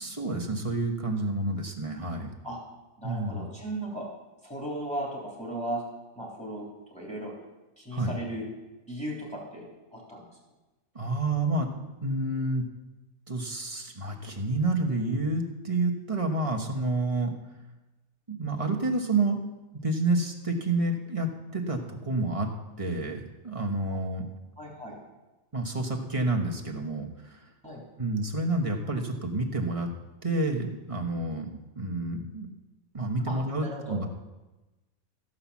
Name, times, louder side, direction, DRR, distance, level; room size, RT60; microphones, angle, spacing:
voice 1, 0.0-2.3 3.0-3.5 7.9-8.1 10.9-11.7 12.0-12.6 13.3-17.3 18.3-19.4 19.8-22.5 22.8-24.2 25.5-27.4 28.0-29.9 30.2-32.5 32.9-34.1, right 2 dB, 25° right, 1 dB, 1.1 m, -29 dB
voice 2, 3.0-4.0 4.4-5.8 6.2-6.7 6.9-7.3 7.8-8.5 8.9-9.7 9.9-10.2 23.9-24.0 24.6-25.0 27.6-27.8 33.3-34.0, right 1 dB, 5° left, -3 dB, 3.7 m, -36 dB
14.5 x 5.7 x 7.2 m, 1.1 s
omnidirectional pair, 1.5 m